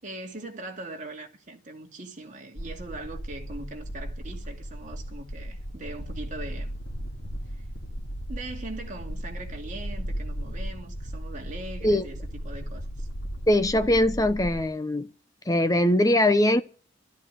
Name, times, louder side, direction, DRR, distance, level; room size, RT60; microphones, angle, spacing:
voice 1, 0.0-6.7 7.5-7.6 8.3-13.1, right 2 dB, 40° right, 2.5 m, -41 dB
sound 1, 2.5-14.6, equal, 75° left, 2.4 m, -36 dB
voice 2, 13.5-15.1 15.5-16.6, left 1 dB, 20° left, 0.8 m, -21 dB
13.0 x 12.0 x 9.1 m
head